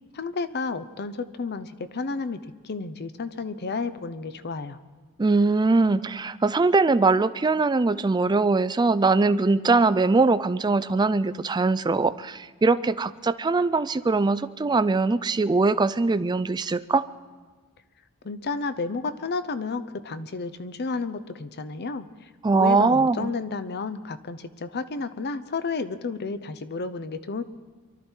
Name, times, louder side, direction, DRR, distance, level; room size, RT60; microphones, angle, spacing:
voice 1, 0.1-4.8 18.2-27.4, left 4 dB, 50° left, 13 dB, 0.7 m, -32 dB
voice 2, 5.2-17.0 22.4-23.3, right 3 dB, 20° right, 14 dB, 0.4 m, -22 dB
23.5 x 12.5 x 4.5 m, 1.4 s
head